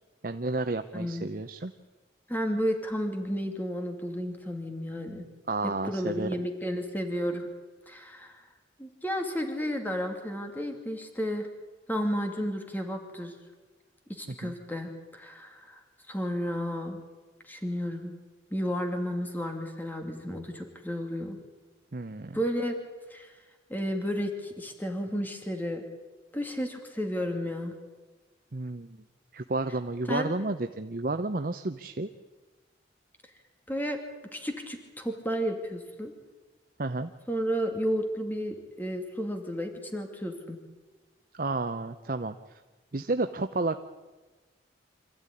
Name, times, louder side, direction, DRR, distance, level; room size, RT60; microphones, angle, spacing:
voice 1, 0.2-1.7 5.5-6.3 14.3-14.5 21.9-22.4 28.5-29.0 29.3-32.1 36.8-37.1 41.3-42.6 42.9-43.9, right 2 dB, 50° right, 8 dB, 0.8 m, -31 dB
voice 2, 0.9-1.3 2.3-5.3 5.8-7.5 7.9-8.4 8.8-11.5 11.9-13.3 14.1-15.8 16.1-17.0 17.5-18.1 18.5-21.4 22.3-22.8 23.1-23.3 23.7-25.8 26.3-27.7 30.1-30.3 33.7-34.0 34.3-36.1 37.3-40.6, equal, 10° left, 4 dB, 2.6 m, -32 dB
26.0 x 15.0 x 9.9 m, 1.3 s
head